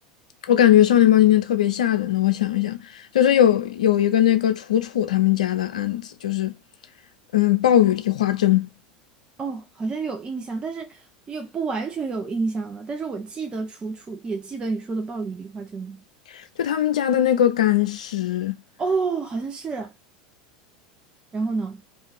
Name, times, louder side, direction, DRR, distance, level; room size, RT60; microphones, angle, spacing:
voice 1, 0.5-6.5 7.3-8.7 16.6-18.6, left 11 dB, 80° left, 0.4 m, -19 dB
voice 2, 9.4-16.0 18.8-19.9 21.3-21.8, right 4 dB, 25° right, 0.5 m, -29 dB
2.5 x 2.4 x 3.2 m
hypercardioid pair, 80°, 4 cm